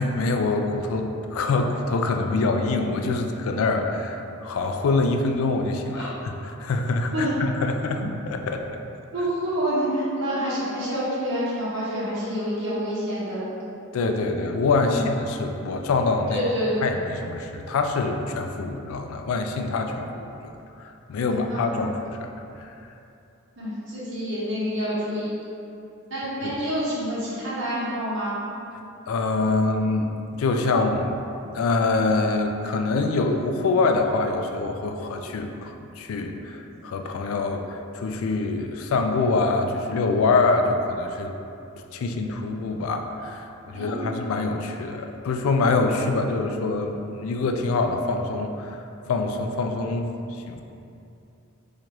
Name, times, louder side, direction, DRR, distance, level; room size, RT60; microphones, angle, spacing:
voice 1, 0.0-8.8 13.9-16.4 16.8-20.5 20.8-22.3 22.6-22.7 26.4-26.5 29.1-31.2 31.5-41.4 41.9-50.6, left 3 dB, 75° left, 4 dB, 0.3 m, -25 dB
voice 2, 9.1-13.5 14.8-15.1 16.3-16.9 21.2-21.9 23.6-25.3 26.1-28.4 43.7-44.1, equal, 60° right, -10 dB, 1.1 m, -28 dB
4.4 x 2.4 x 2.9 m, 2.7 s
head